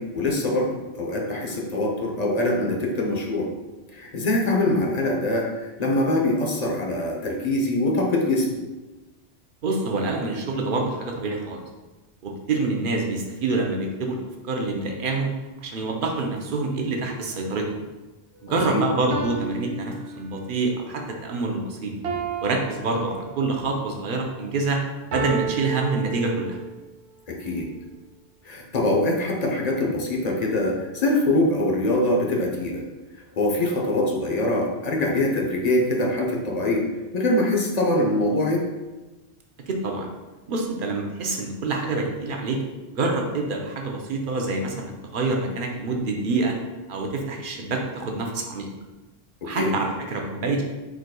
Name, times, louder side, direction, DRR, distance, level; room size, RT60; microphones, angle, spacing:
voice 1, 0.0-3.5 3.9-8.6 18.5-18.9 27.3-27.7 28.4-32.8 33.4-36.9 37.1-38.7 49.4-49.7, left 1 dB, 45° left, -1 dB, 0.7 m, -23 dB
voice 2, 9.6-11.6 12.2-14.2 14.4-15.3 15.6-17.7 18.4-21.9 22.4-24.8 25.1-26.6 39.7-40.1 40.5-42.6 42.9-46.5 46.9-48.7 49.4-50.6, right 3 dB, 60° right, 1 dB, 0.7 m, -26 dB
sound 1, 18.3-18.5 19.1-20.7 22.0-23.7 25.1-26.7, right 6 dB, 85° right, 0.9 m, -32 dB
4.7 x 3.9 x 2.2 m, 1.2 s
omnidirectional pair, 1.1 m